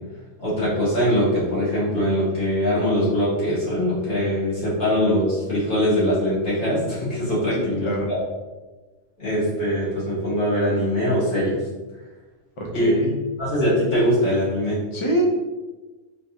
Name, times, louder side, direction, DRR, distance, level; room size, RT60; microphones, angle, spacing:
voice 1, 0.4-8.2 9.2-11.6 12.7-12.9 13.4-14.8, equal, 70° left, -9 dB, 2.0 m, -22 dB
voice 2, 7.6-8.1 12.6-13.1 14.9-15.2, right 1 dB, 40° left, 0 dB, 0.4 m, -25 dB
3.9 x 2.5 x 2.8 m, 1.2 s
omnidirectional pair, 1.3 m